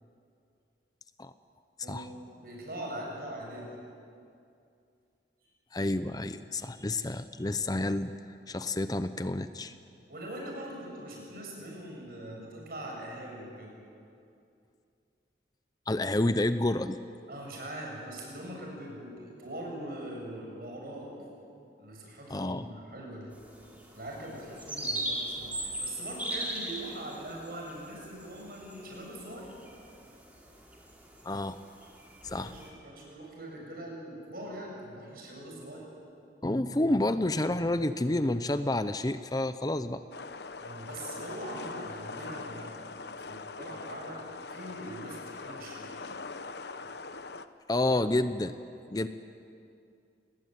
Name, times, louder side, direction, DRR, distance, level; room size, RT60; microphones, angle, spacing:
voice 1, 1.8-3.7 10.1-13.7 17.3-21.2 21.8-23.3 23.9-29.5 32.3-35.9 40.6-45.9, right 1 dB, 55° right, -1 dB, 7.9 m, -42 dB
voice 2, 5.7-8.1 8.5-9.7 15.9-17.0 22.3-22.7 31.2-31.6 32.2-32.5 36.4-40.0 47.7-48.6 48.9-49.1, left 1 dB, 20° left, 11 dB, 0.6 m, -29 dB
sound 1, 23.3-32.7, right 1 dB, 10° right, 3.8 m, -39 dB
sound 2, 40.1-47.5, left 4 dB, 70° left, 1.0 m, -42 dB
28.0 x 20.0 x 9.4 m, 2.5 s
head